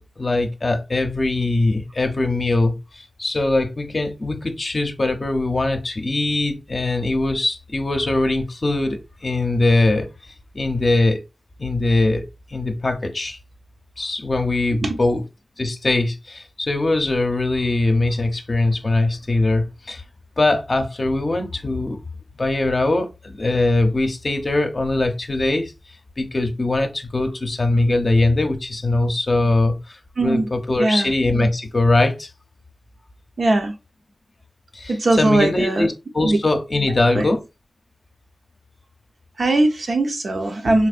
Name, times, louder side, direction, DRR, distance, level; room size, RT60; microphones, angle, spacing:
voice 1, 0.2-11.2 11.6-13.4 14.0-15.2 15.6-20.0 20.4-22.0 22.4-25.7 26.2-32.3 34.7-37.4, left 2 dB, 45° left, 0.6 m, -21 dB
voice 2, 30.8-31.1 33.4-33.7 34.9-35.9 36.2-36.4 37.1-37.3 39.4-40.9, right 2 dB, 65° right, 0.7 m, -19 dB
3.9 x 2.6 x 2.4 m
wide cardioid pair, 70°, 0 cm